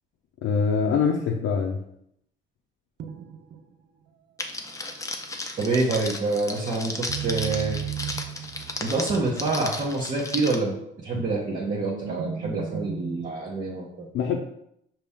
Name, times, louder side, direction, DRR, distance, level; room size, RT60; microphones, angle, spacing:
voice 1, 0.4-1.8 14.1-14.4, left 6 dB, 80° left, -1 dB, 0.6 m, -24 dB
sound 1, 3.0-3.7 7.1-10.2 10.6-13.3, right 8 dB, 65° right, 0.5 m, -35 dB
Crackle, 4.4-10.6, left 2 dB, 15° left, 0.6 m, -34 dB
voice 2, 5.6-7.8 8.8-14.1, right 3 dB, 40° right, -4 dB, 1.0 m, -27 dB
5.2 x 2.9 x 3.5 m, 0.75 s
cardioid pair, 90°, 20 cm